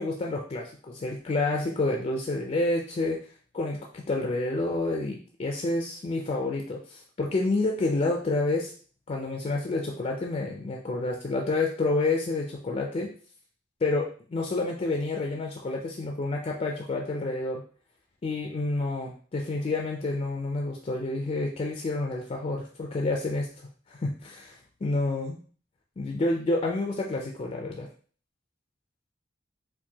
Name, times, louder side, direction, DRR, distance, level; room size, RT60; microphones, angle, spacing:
voice 1, 0.0-3.3 3.5-8.7 9.1-13.1 13.8-17.6 18.2-23.5 23.9-25.4 26.0-27.9, left 2 dB, 35° left, 1 dB, 0.4 m, -29 dB
4.4 x 2.2 x 2.8 m, 0.42 s
head